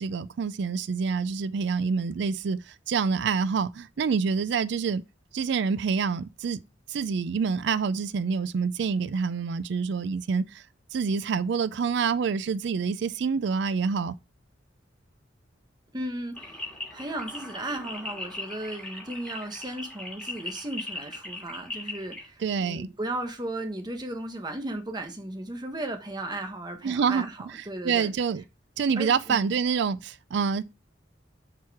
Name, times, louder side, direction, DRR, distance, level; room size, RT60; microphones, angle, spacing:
voice 1, 0.0-5.0 5.3-6.6 6.9-10.6 10.9-14.1 22.4-22.9 26.8-28.4 28.8-30.6, right 5 dB, 65° right, 0.4 m, -27 dB
voice 2, 15.9-28.1 28.9-29.5, right 1 dB, 20° right, 1.1 m, -35 dB
sound 1, 16.3-22.3, left 2 dB, 10° left, 2.7 m, -39 dB
7.5 x 4.7 x 3.5 m
head